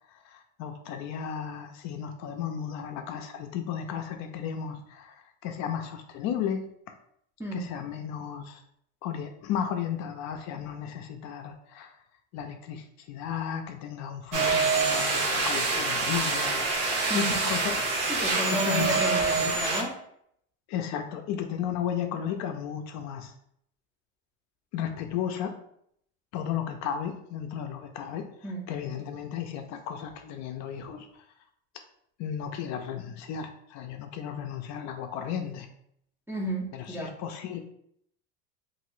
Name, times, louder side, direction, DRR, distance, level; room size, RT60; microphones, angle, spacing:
voice 1, 0.1-6.6 7.5-8.6 9.0-11.9 12.3-16.7 17.1-17.7 18.5-19.6 20.7-23.3 24.7-25.5 26.3-28.3 28.7-31.2 32.2-35.7 36.7-37.6, left 8 dB, 50° left, 5 dB, 0.4 m, -34 dB
sound 1, 14.3-19.8, right 4 dB, 65° right, 0.9 m, -26 dB
voice 2, 17.1-17.4 18.1-19.9 28.4-28.6 36.3-37.1, right 1 dB, 5° right, -2 dB, 0.5 m, -32 dB
2.8 x 2.6 x 3.1 m, 0.70 s
supercardioid pair, 135°, 35 cm